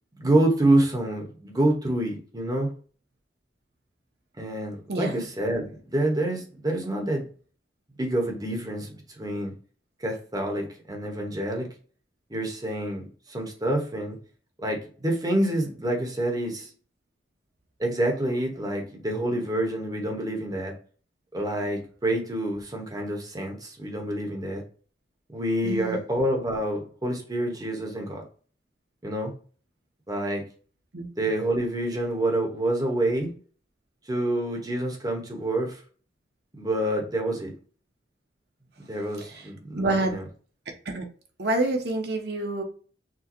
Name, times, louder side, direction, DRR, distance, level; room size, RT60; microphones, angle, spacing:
voice 1, 0.2-2.7 4.4-7.2 8.0-9.5 10.0-11.7 12.3-14.2 14.6-16.7 17.8-20.7 21.3-24.6 25.3-28.2 29.0-29.3 30.1-30.4 31.2-33.3 34.1-35.8 36.6-37.5 38.9-40.2, right 1 dB, 20° right, 1.1 m, -27 dB
voice 2, 4.9-5.2 25.6-26.0 30.9-31.0 39.3-39.4 39.7-40.1 40.8-41.1 41.4-42.6, right 2 dB, 65° right, 1.1 m, -27 dB
6.2 x 2.2 x 3.0 m
head